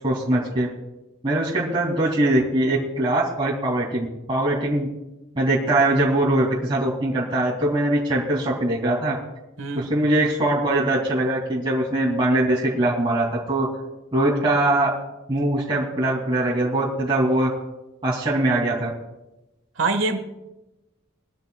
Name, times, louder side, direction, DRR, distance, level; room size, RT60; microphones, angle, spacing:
voice 1, 0.0-0.7 1.2-4.9 5.3-9.2 9.7-13.7 14.1-14.9 15.3-17.5 18.0-18.9, right 1 dB, 25° right, 2.7 m, -22 dB
voice 2, 9.6-9.9 19.8-20.2, right 3 dB, 70° right, 1.5 m, -24 dB
23.0 x 14.0 x 2.3 m
head